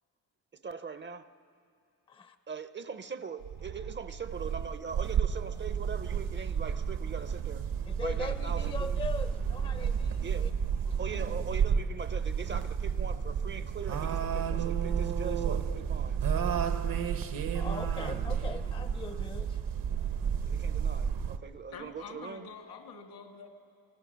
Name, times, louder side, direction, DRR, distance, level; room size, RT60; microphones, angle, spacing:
voice 1, 0.6-1.3 2.5-7.7 8.0-9.0 10.2-10.5 11.0-16.3 18.1-18.2 20.4-22.5, right 5 dB, 30° right, 0.6 m, -41 dB
sound 1, 3.4-21.4, right 7 dB, 65° right, 1.0 m, -31 dB
voice 2, 7.9-10.5 10.9-11.0 11.3-11.5 17.5-19.6, left 3 dB, 15° left, 0.6 m, -41 dB
voice 3, 21.7-23.5, left 5 dB, 75° left, 2.3 m, -46 dB
25.0 x 23.5 x 6.3 m
cardioid pair, 125°, 37 cm